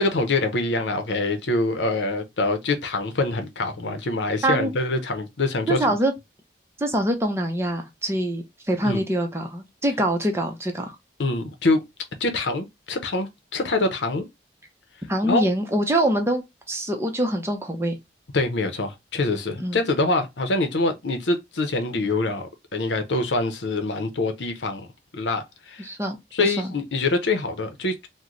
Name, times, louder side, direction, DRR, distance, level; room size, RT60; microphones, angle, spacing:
voice 1, 0.0-6.0 8.8-9.0 11.2-11.8 12.2-14.3 15.2-15.4 18.3-24.9 25.1-25.9 26.3-28.1, left 2 dB, 80° left, 0.7 m, -25 dB
voice 2, 5.7-6.1 6.8-11.0 15.1-18.0 19.6-19.8 25.8-26.7, right 1 dB, 15° right, 0.6 m, -24 dB
3.0 x 2.1 x 3.8 m
head